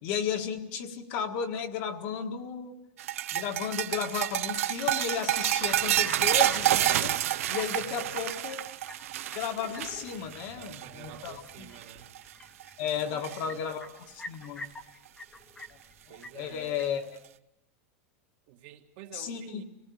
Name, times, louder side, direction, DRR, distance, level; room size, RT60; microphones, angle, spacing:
voice 1, 0.0-2.8 3.3-7.2 7.5-8.7 9.3-11.7 12.8-14.7 16.3-17.2 19.1-19.6, left 7 dB, 40° left, 5 dB, 1.6 m, -34 dB
sound 1, 3.0-11.5 11.8-12.2 12.6-13.4 14.8-14.9 16.1-16.2, right 13 dB, 80° right, 0.9 m, -29 dB
sound 2, 5.6-17.1, left 1 dB, 10° left, 1.1 m, -49 dB
voice 2, 7.7-8.3 10.4-12.1 12.9-13.6 16.1-16.8 18.5-19.6, right 9 dB, 45° right, 4 dB, 1.6 m, -49 dB
26.0 x 18.5 x 7.1 m, 0.84 s
supercardioid pair, 175°, 7 cm